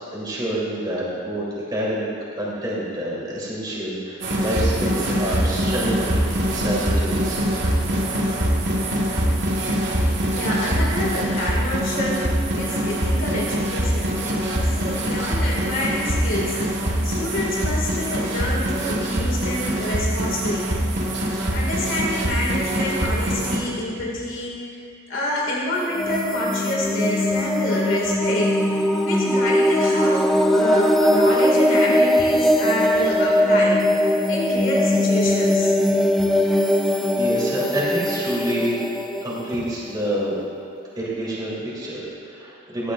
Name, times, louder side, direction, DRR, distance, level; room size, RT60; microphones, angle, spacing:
voice 1, 0.1-2.1 2.4-6.2 6.5-7.5 36.7-36.9 37.2-38.8 39.2-40.4 40.9-42.9, right 1 dB, 20° right, -7 dB, 3.2 m, -27 dB
sound 1, 4.2-23.6, equal, 55° right, 1.6 m, -23 dB
voice 2, 10.3-20.7 21.5-24.5 25.1-28.6 29.0-33.8 34.3-35.7, equal, 60° left, -4 dB, 2.2 m, -27 dB
sound 2, 25.8-40.4, left 1 dB, ahead, 0.4 m, -20 dB
17.0 x 14.0 x 2.5 m, 2.3 s
head